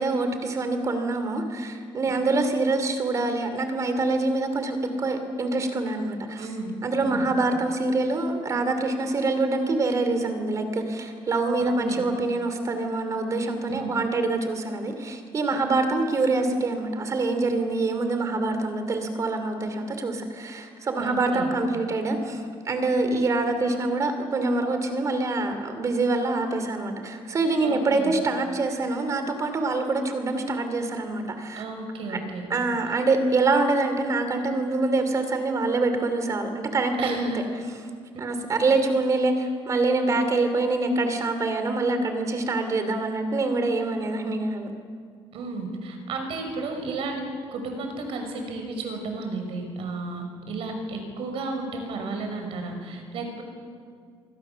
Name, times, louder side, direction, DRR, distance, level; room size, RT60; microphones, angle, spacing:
voice 1, 0.0-6.5 6.8-31.7 32.1-32.2 32.5-37.4 38.2-44.7, right 3 dB, 30° right, 7 dB, 2.9 m, -25 dB
voice 2, 6.4-6.7 7.0-7.3 11.6-12.0 13.7-13.9 21.0-21.5 27.6-28.1 31.5-32.4 37.0-37.4 45.3-47.2 47.5-53.4, right 3 dB, 65° right, 4 dB, 5.9 m, -33 dB
27.0 x 23.5 x 7.0 m, 2.1 s
cardioid pair, 180°, 10 cm